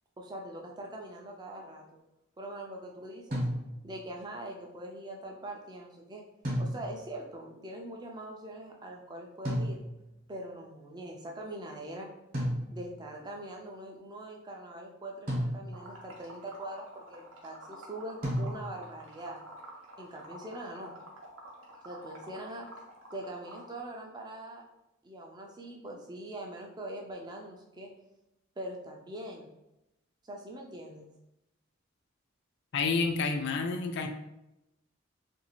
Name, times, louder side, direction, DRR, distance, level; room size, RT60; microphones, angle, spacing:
voice 1, 0.2-2.0 2.4-3.4 3.8-6.2 6.6-9.8 10.3-12.1 12.7-19.4 20.0-21.0 21.8-22.7 23.1-24.6 25.0-27.9 28.6-29.5 30.3-31.1, right 1 dB, 20° right, 0 dB, 0.4 m, -42 dB
sound 1, 3.3-4.1 6.4-7.2 9.5-10.2 12.3-13.1 15.3-16.0 18.2-19.0, equal, 45° right, 0.9 m, -34 dB
Liquid, 15.7-23.7, right 1 dB, 80° right, 0.7 m, -49 dB
voice 2, 32.7-34.1, left 4 dB, 55° left, 4 dB, 0.3 m, -29 dB
2.6 x 2.4 x 2.9 m, 0.90 s
head